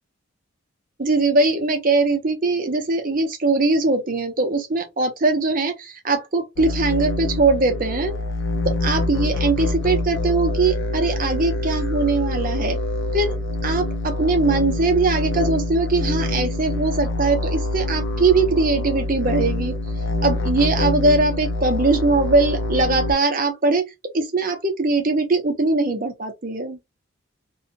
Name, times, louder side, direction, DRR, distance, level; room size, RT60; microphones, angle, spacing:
voice 1, 1.0-8.1 8.6-12.8 13.1-13.3 13.6-19.7 20.2-23.8 24.1-26.8, right 3 dB, 40° right, 0.7 m, -21 dB
sound 1, 6.6-23.1, left 2 dB, 60° left, 0.5 m, -25 dB
2.7 x 2.3 x 2.7 m
head